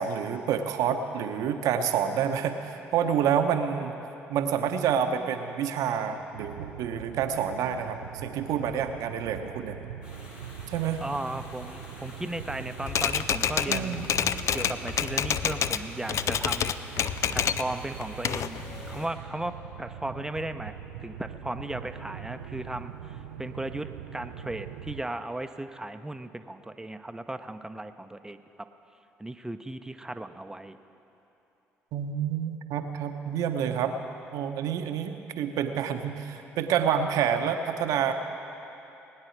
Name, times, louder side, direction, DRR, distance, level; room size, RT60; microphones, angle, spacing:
voice 1, 0.0-3.9 4.3-9.8 10.7-11.0 13.7-14.1 31.9-34.0 34.3-38.1, right 8 dB, 70° right, 7 dB, 0.9 m, -28 dB
sound 1, 6.3-25.0, right 9 dB, 90° right, 0.4 m, -42 dB
sound 2, 10.0-19.1, left 1 dB, 80° left, 3.3 m, -48 dB
voice 2, 11.0-16.7 17.3-20.7 21.0-28.4 29.2-30.8, right 1 dB, 10° right, 9 dB, 0.7 m, -36 dB
Typewriter, 12.9-15.8 16.1-17.7 18.0-19.1, left 8 dB, 55° left, 0.4 m, -28 dB
20.0 x 9.8 x 4.7 m, 2.9 s
hypercardioid pair, 50°, 6 cm